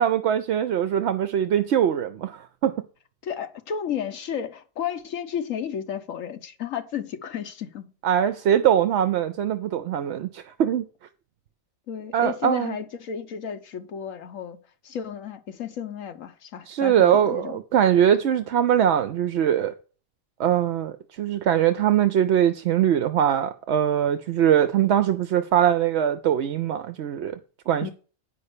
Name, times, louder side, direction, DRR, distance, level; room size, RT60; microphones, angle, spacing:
voice 1, 0.0-2.7 8.0-10.8 12.1-12.8 16.7-19.7 20.4-27.4 27.7-27.9, right 9 dB, 65° right, 0.8 m, -22 dB
voice 2, 3.2-7.9 11.9-14.6 14.8-17.6 27.8-27.9, left 8 dB, 75° left, 1.4 m, -32 dB
9.3 x 5.4 x 6.7 m
omnidirectional pair, 1.4 m